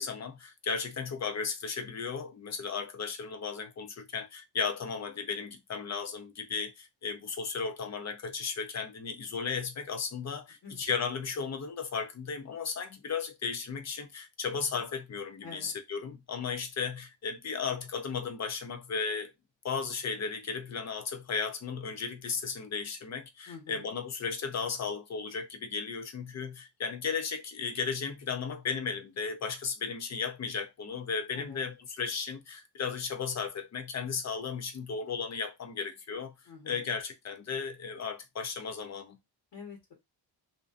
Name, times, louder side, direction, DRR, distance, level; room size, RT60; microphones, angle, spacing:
voice 1, 0.0-19.3 19.6-36.3 36.7-39.2, left 5 dB, 40° left, 0.4 m, -35 dB
voice 2, 15.4-15.7 23.5-23.8 31.3-31.6 36.5-36.8 39.5-39.9, left 5 dB, 65° left, 1.2 m, -47 dB
2.5 x 2.1 x 2.4 m
wide cardioid pair, 155°, 47 cm